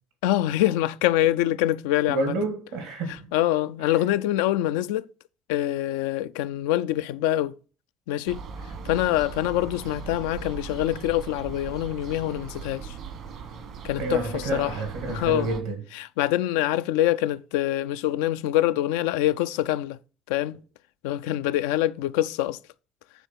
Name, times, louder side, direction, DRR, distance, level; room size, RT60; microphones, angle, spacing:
voice 1, 0.2-2.3 3.3-5.0 5.5-7.5 8.1-8.4 8.8-13.0 13.8-14.8 15.1-15.5 16.0-20.0 20.3-20.6 21.0-22.6, left 13 dB, 80° left, 0.3 m, -25 dB
voice 2, 2.1-3.3 14.0-15.8, right 2 dB, 80° right, 2.1 m, -29 dB
sound 1, 8.3-15.6, right 6 dB, 65° right, 1.5 m, -39 dB
9.3 x 3.6 x 6.0 m
hypercardioid pair, 60°, 0 cm